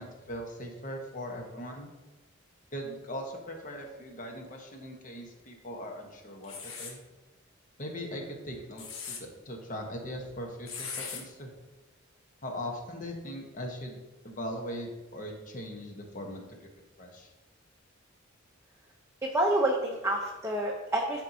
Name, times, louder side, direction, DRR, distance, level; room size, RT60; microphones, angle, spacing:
voice 1, 0.0-1.9 2.7-7.0 7.8-11.5 12.4-14.0 14.2-16.4 17.0-17.3, equal, 40° left, 2 dB, 1.1 m, -40 dB
paper rupture, 6.4-7.0 8.6-9.2 10.7-11.2, left 6 dB, 85° left, 1.3 m, -39 dB
voice 2, 19.2-21.2, right 1 dB, 15° right, -1 dB, 0.7 m, -28 dB
11.5 x 4.4 x 2.8 m, 1.1 s
head